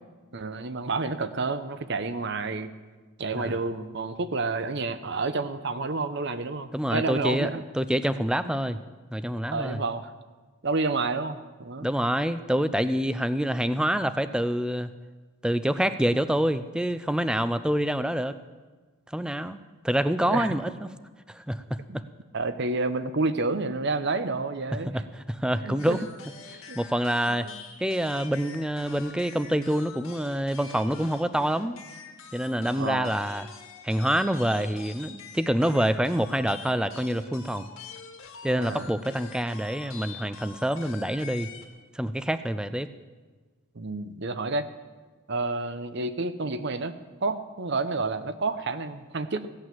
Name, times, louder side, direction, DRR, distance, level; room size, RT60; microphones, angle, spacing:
voice 1, 0.3-2.7 3.2-7.6 8.5-8.6 9.5-10.1 10.6-11.9 20.3-20.5 21.9-22.0 22.3-25.0 25.6-26.0 26.7-26.8 27.3-27.6 32.8-33.1 38.5-38.9 43.7-44.6 45.3-46.9 47.2-49.5, right 3 dB, 55° right, 11 dB, 0.8 m, -29 dB
voice 2, 6.7-7.5 7.7-8.8 9.1-9.8 11.8-14.9 15.4-18.4 19.1-19.6 19.8-20.9 21.3-22.0 24.9-25.0 25.3-26.0 26.8-27.5 27.8-31.8 32.3-33.5 33.8-37.7 38.4-41.5 41.9-42.9, equal, 5° right, 12 dB, 0.4 m, -26 dB
sound 1, 25.8-41.7, left 6 dB, 70° left, 1.8 m, -46 dB
15.5 x 8.7 x 7.5 m, 1.4 s
head